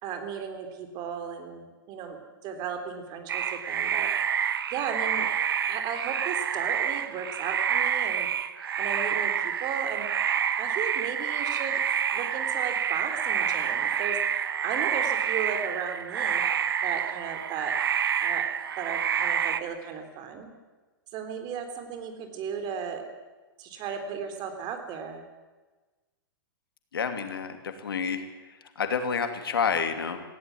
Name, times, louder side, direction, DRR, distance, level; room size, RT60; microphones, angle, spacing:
voice 1, 0.0-2.2 2.4-4.1 4.7-5.3 5.7-8.3 8.8-10.1 10.6-11.8 12.1-14.2 14.6-16.5 16.8-17.7 18.2-18.5 18.8-20.5 21.1-23.0 23.6-25.2, right 7 dB, 35° right, 6 dB, 3.7 m, -35 dB
sound 1, 3.3-19.6, right 8 dB, 80° right, 1.2 m, -28 dB
voice 2, 26.9-28.2 28.8-30.2, left 6 dB, 85° left, 7 dB, 2.8 m, -29 dB
18.0 x 16.0 x 9.6 m, 1.3 s
hypercardioid pair, 125°, 12 cm